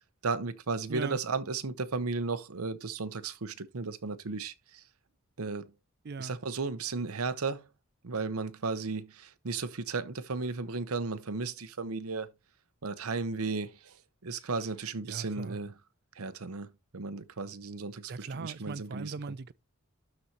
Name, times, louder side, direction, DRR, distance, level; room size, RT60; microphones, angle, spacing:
voice 1, 0.2-4.8 5.4-5.7 6.2-7.7 8.0-12.3 12.8-14.0 14.2-15.7 16.2-19.1, right 4 dB, 80° right, 0.9 m, -35 dB
voice 2, 6.0-6.4 15.1-15.6 18.1-19.5, right 4 dB, 50° right, 0.5 m, -39 dB
12.5 x 4.2 x 2.9 m
head